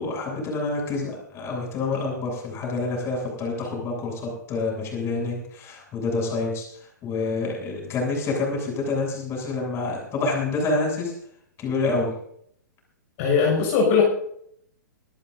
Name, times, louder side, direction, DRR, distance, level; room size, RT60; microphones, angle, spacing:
voice 1, 0.0-6.6 7.0-11.1 11.6-12.1, left 3 dB, 25° left, 0 dB, 7.8 m, -27 dB
voice 2, 13.2-14.0, left 6 dB, 45° left, -2 dB, 6.5 m, -19 dB
25.5 x 14.0 x 2.7 m, 0.69 s
figure-of-eight pair, 115°, 10 cm